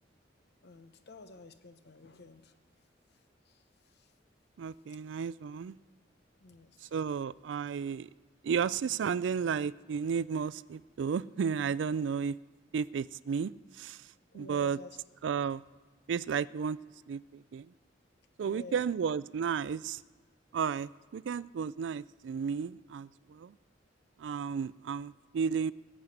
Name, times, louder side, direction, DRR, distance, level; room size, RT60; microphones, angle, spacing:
voice 1, 0.6-2.5 3.5-3.6 3.9-4.1 6.4-6.9 14.3-15.0 18.4-18.8, left 3 dB, 60° left, 10 dB, 0.9 m, -51 dB
voice 2, 4.6-5.8 6.9-8.1 8.4-12.4 12.7-13.5 13.8-14.0 14.3-14.8 15.2-15.6 16.1-16.8 17.1-17.7 18.4-20.0 20.5-23.5 24.2-25.7, right 6 dB, 70° right, 20 dB, 0.3 m, -33 dB
17.0 x 7.4 x 8.0 m, 1.3 s
head